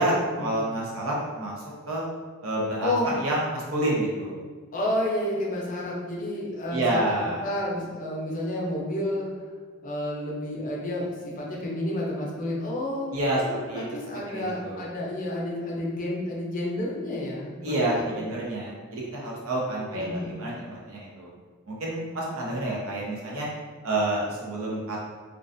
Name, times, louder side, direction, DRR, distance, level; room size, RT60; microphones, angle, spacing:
voice 1, 0.0-1.5 1.9-2.0 2.4-4.3 6.7-7.4 13.1-13.4 13.7-13.8 14.3-14.8 17.6-21.3 21.7-23.5 23.8-25.1, right 1 dB, 70° right, -4 dB, 0.7 m, -28 dB
voice 2, 4.7-7.0 7.4-9.5 9.8-11.1 11.4-13.1 13.4-18.2 19.9-20.3, left 1 dB, 40° left, -3 dB, 0.4 m, -30 dB
2.4 x 2.2 x 2.5 m, 1.5 s
head